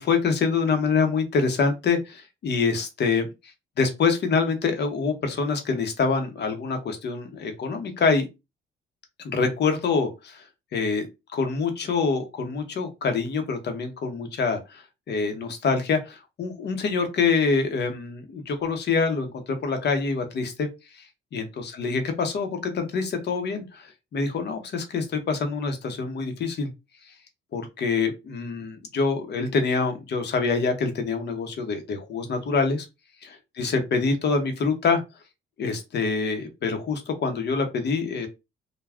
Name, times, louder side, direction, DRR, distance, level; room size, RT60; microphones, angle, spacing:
voice 1, 0.0-3.3 3.8-8.2 9.2-10.4 10.7-11.0 11.3-20.7 20.9-21.0 21.3-26.7 27.1-27.2 27.5-32.9 33.2-35.0 35.6-38.3, left 4 dB, 60° left, 6 dB, 0.9 m, -25 dB
2.4 x 2.2 x 3.4 m, 0.24 s
cardioid pair, 90°, 20 cm